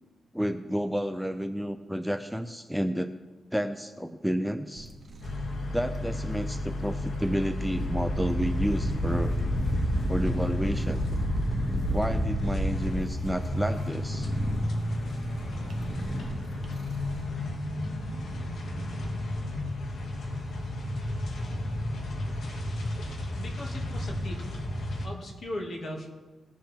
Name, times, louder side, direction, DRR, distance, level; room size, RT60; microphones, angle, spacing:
voice 1, 0.3-3.1 3.5-4.9 5.7-9.4 10.1-11.2 11.9-14.3, equal, ahead, 8 dB, 0.5 m, -31 dB
sound 1, 4.7-17.2, right 1 dB, 40° right, 1.3 m, -42 dB
sound 2, 5.2-25.1, left 1 dB, 70° left, 2.1 m, -33 dB
Wind, 7.1-13.3, equal, 20° left, 1.6 m, -30 dB
voice 2, 23.4-24.6 25.0-26.1, left 1 dB, 50° left, 0 dB, 2.3 m, -38 dB
18.5 x 7.4 x 3.6 m, 1.2 s
cardioid pair, 95°, 0 cm